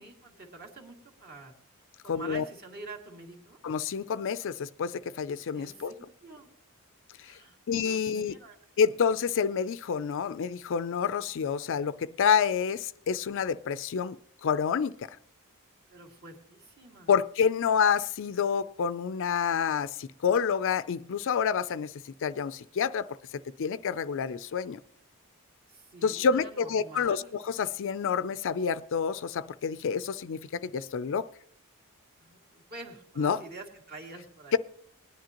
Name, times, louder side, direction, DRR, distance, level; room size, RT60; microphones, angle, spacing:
voice 1, 0.0-1.5 2.0-3.6 5.5-6.5 7.2-8.9 15.9-17.1 25.7-27.4 32.2-34.6, right 2 dB, 45° right, 2.3 m, -47 dB
voice 2, 2.1-2.4 3.6-5.9 7.2-7.3 7.7-8.4 8.8-15.1 17.1-21.9 22.2-23.2 23.6-24.8 26.0-31.3 33.2-33.4 34.5-34.6, left 6 dB, 60° left, 0.4 m, -28 dB
20.0 x 10.5 x 2.9 m
head